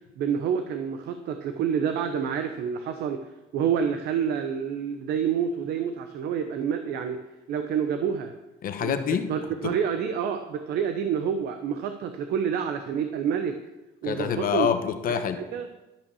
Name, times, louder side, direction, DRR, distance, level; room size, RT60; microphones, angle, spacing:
voice 1, 0.2-3.2 3.5-7.2 7.5-8.3 8.8-8.9 9.3-13.6 14.0-14.7 15.4-15.6, right 7 dB, 75° right, 7 dB, 0.8 m, -28 dB
voice 2, 8.6-9.3 9.6-9.8 14.0-15.4, left 8 dB, 55° left, 9 dB, 1.1 m, -26 dB
12.0 x 5.4 x 6.9 m, 1.0 s
cardioid pair, 110°, 17 cm